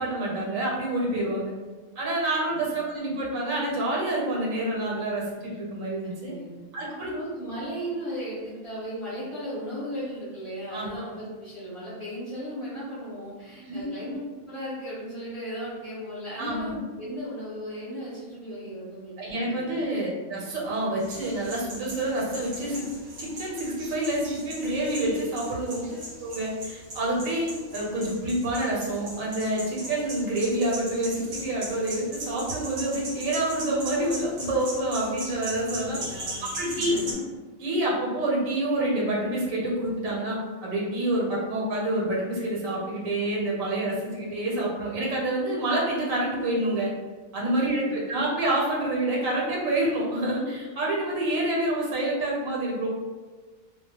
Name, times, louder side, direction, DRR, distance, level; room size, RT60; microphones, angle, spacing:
voice 1, 0.0-1.5 2.0-6.3 6.7-7.1 10.7-11.0 13.7-13.8 16.4-16.8 19.2-22.9 23.2-25.8 26.2-36.0 36.5-36.9 37.6-46.9 47.3-52.9, right 1 dB, 75° right, -3 dB, 1.0 m, -27 dB
voice 2, 6.0-6.5 7.0-14.2 14.5-19.6 25.6-26.1 35.7-37.2 47.4-48.0, equal, 25° left, -11 dB, 0.9 m, -36 dB
sound 1, 21.0-37.1, right 1 dB, 60° right, 0.7 m, -39 dB
2.3 x 2.0 x 2.8 m, 1.4 s
omnidirectional pair, 1.4 m